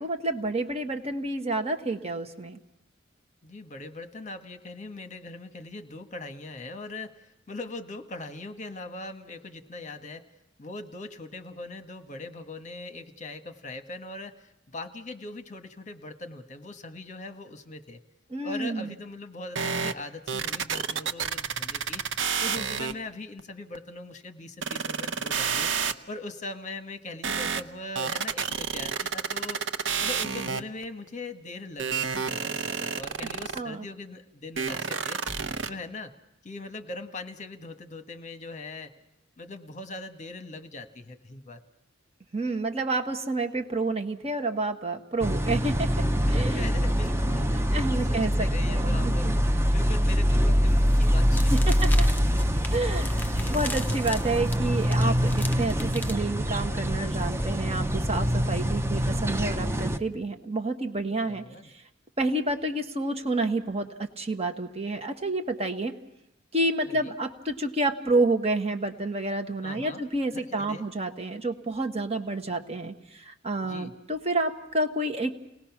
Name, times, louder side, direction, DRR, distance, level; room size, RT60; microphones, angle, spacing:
voice 1, 0.0-2.6 18.3-18.9 33.5-33.8 42.3-45.9 46.3-46.7 47.7-49.4 51.5-51.9 52.7-61.4 62.2-63.9 64.2-65.9 66.5-75.3, right 2 dB, 35° right, 6 dB, 1.5 m, -29 dB
voice 2, 3.4-10.3 10.6-18.0 18.4-22.0 22.4-25.7 26.1-29.6 30.0-35.2 35.7-36.1 36.4-38.9 39.4-41.6 46.2-49.3 49.7-51.7 53.3-53.6 61.1-61.7 66.8-67.2 69.6-70.0 70.3-70.8 73.6-73.9, left 2 dB, 40° left, 8 dB, 1.3 m, -40 dB
sound 1, 19.6-19.9 20.3-22.9 23.4-23.5 23.8-23.9 24.6-25.9 27.2-27.6 28.0-30.8 31.8-33.6 34.6-35.7, right 6 dB, 70° right, 0.9 m, -29 dB
sound 2, 45.2-60.0, equal, 15° right, 0.8 m, -24 dB
sound 3, 50.7-56.2, left 2 dB, 10° left, 1.1 m, -38 dB
29.5 x 19.5 x 6.0 m, 0.86 s
head